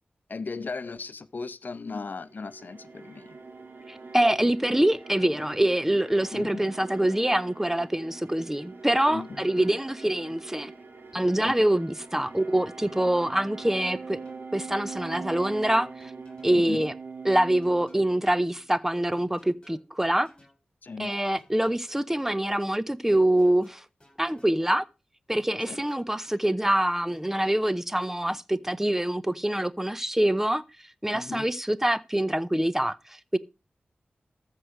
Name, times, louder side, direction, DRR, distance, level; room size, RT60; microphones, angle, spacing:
voice 1, 0.3-3.4 6.3-6.7 9.1-9.4 11.4-11.6 16.5-16.9 20.8-21.2 25.7-25.8 31.1-31.5, left 4 dB, 55° left, 0.8 m, -37 dB
sound 1, 2.3-18.6, right 4 dB, 75° right, 2.0 m, -43 dB
voice 2, 3.9-10.7 11.1-14.2 14.5-16.1 16.4-16.9 17.2-20.3 21.0-23.8 24.2-24.8 25.3-30.6 31.0-33.4, right 1 dB, 10° right, 0.8 m, -25 dB
sound 2, 9.4-10.4 11.1-12.6 13.4-14.5 15.1-16.6 17.4-18.5 19.1-20.6 21.4-22.5 23.1-24.6 25.4-26.5 27.1-28.3, left 1 dB, 20° left, 4.7 m, -58 dB
14.0 x 4.7 x 6.5 m
wide cardioid pair, 80°, 4 cm